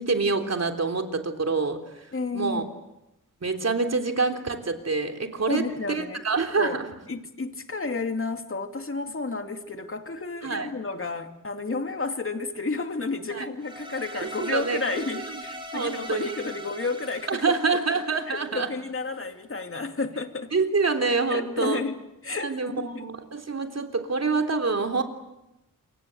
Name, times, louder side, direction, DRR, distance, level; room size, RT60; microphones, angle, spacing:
voice 1, 0.0-2.1 2.3-2.6 3.4-6.9 10.4-10.7 13.3-13.5 14.2-15.0 15.3-15.4 15.7-16.4 17.3-18.7 20.5-21.8 22.4-25.0, right 4 dB, 50° right, 5 dB, 3.6 m, -26 dB
voice 2, 2.1-2.7 5.5-6.8 7.1-17.5 18.3-20.5 21.3-23.0, left 3 dB, 40° left, 6 dB, 2.6 m, -31 dB
sound 1, 13.6-18.8, right 1 dB, 15° right, 5.7 m, -41 dB
28.0 x 24.0 x 7.9 m, 0.93 s
cardioid pair, 70°, 33 cm